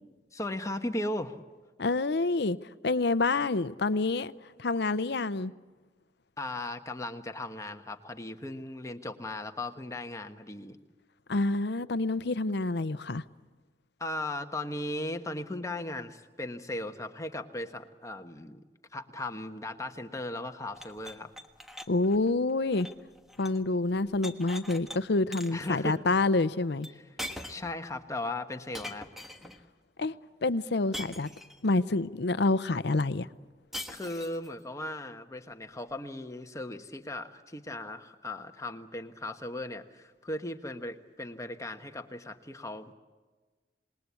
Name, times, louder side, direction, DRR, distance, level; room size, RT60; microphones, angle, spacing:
voice 1, 0.3-1.4 6.4-10.8 14.0-18.6 18.9-21.3 25.5-26.0 26.9-27.0 27.5-29.1 29.4-29.5 33.9-42.9, left 1 dB, 20° left, 1.3 m, -37 dB
voice 2, 1.8-2.6 2.8-4.3 4.6-5.5 11.3-13.2 21.9-22.9 23.4-26.9 30.0-30.1 30.4-31.3 31.6-33.3, left 3 dB, 65° left, 0.7 m, -27 dB
sound 1, 20.7-23.7 23.9-25.0 25.3-25.7 26.8-26.9 27.2-27.8 28.7-29.6 30.9-31.8 33.7-34.5, left 1 dB, ahead, 1.4 m, -42 dB
27.5 x 20.5 x 8.4 m
head